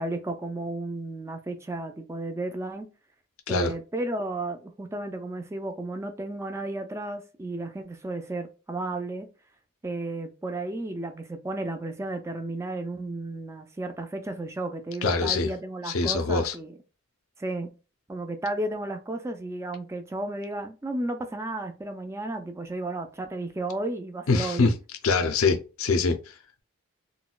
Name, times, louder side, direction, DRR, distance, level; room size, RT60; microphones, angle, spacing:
voice 1, 0.0-2.9 3.5-9.3 9.8-16.8 17.4-17.7 18.1-24.7, right 2 dB, 15° right, 0.3 m, -33 dB
voice 2, 15.0-15.5 15.9-16.5 24.3-24.7 25.0-26.2, left 4 dB, 80° left, 0.5 m, -24 dB
3.9 x 2.2 x 2.3 m
head